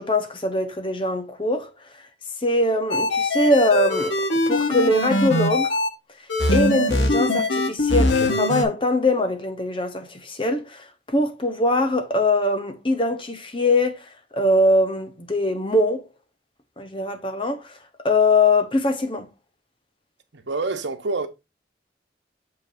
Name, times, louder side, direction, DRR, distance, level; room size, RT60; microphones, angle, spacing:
voice 1, 0.0-2.0 2.4-4.2 4.5-5.8 6.5-16.1 16.8-17.8 18.0-19.3, left 2 dB, 30° left, 1.0 m, -22 dB
sound 1, 2.9-5.9 6.3-8.6, left 2 dB, 85° left, 1.4 m, -22 dB
voice 2, 20.3-21.3, right 3 dB, 85° right, 1.0 m, -27 dB
6.9 x 5.3 x 2.6 m
head